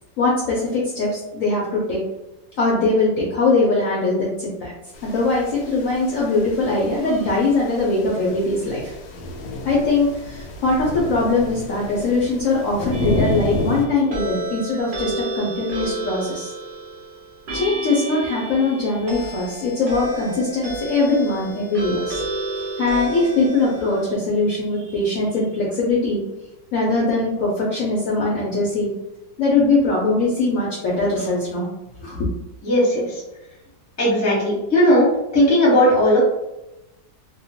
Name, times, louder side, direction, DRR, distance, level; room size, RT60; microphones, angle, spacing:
voice 1, 0.2-2.0 2.6-4.7 5.0-8.9 9.6-16.5 17.5-22.2 22.6-26.2 26.7-28.9 29.4-31.7 32.0-32.3, left 3 dB, 65° left, -4 dB, 0.8 m, -21 dB
sound 1, 4.9-13.9, left 1 dB, 80° left, 1.2 m, -30 dB
sound 2, 12.9-24.1, right 1 dB, 80° right, 0.4 m, -31 dB
voice 2, 32.6-33.2 34.0-35.1 35.3-36.2, left 1 dB, 15° left, -6 dB, 0.6 m, -16 dB
2.9 x 2.2 x 2.7 m, 0.95 s
omnidirectional pair, 1.9 m